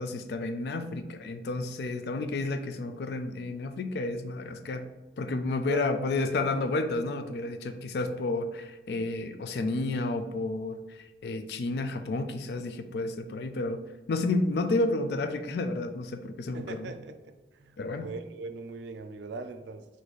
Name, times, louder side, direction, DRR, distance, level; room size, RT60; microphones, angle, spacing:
voice 1, 0.0-4.9 5.2-13.8 14.1-16.9 17.8-18.1, left 2 dB, 70° left, 8 dB, 0.3 m, -31 dB
voice 2, 16.5-19.9, right 3 dB, 85° right, 8 dB, 0.4 m, -39 dB
3.1 x 2.6 x 4.0 m, 1.1 s
head